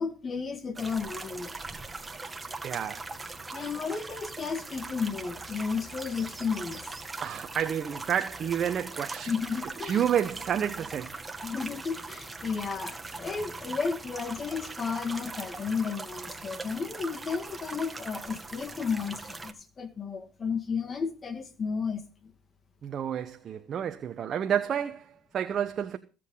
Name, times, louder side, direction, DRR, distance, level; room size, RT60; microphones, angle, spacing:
voice 1, 0.0-1.6 3.5-6.8 9.3-10.0 11.4-22.0, left 5 dB, 35° left, 2.0 m, -33 dB
sound 1, 0.8-19.5, right 3 dB, 15° right, 1.9 m, -41 dB
voice 2, 2.6-3.1 7.2-9.3 9.8-11.2 22.8-26.0, right 9 dB, 45° right, 1.0 m, -30 dB
21.5 x 7.8 x 3.9 m
supercardioid pair, 80°, 0 cm